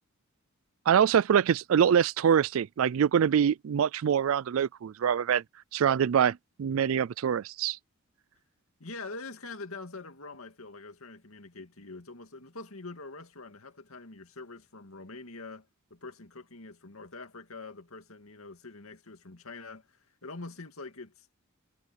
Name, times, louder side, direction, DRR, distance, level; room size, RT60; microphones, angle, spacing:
voice 1, 0.9-5.4 5.7-7.8, right 8 dB, 65° right, 0.4 m, -24 dB
voice 2, 8.8-21.4, left 3 dB, 75° left, 2.3 m, -44 dB
head